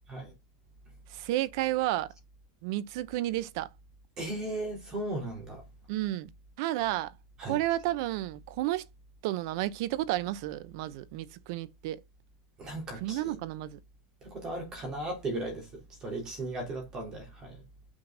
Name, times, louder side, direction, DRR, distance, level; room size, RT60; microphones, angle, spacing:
voice 1, 1.1-2.1 2.6-3.7 5.9-6.3 6.6-7.1 7.4-8.9 9.2-12.0 13.0-13.8, right 15 dB, 50° right, 0.8 m, -31 dB
voice 2, 4.2-5.6 7.4-7.6 12.6-13.4 14.2-17.6, right 2 dB, 25° right, 3.6 m, -36 dB
6.1 x 5.8 x 4.9 m
supercardioid pair, 165°, 3 cm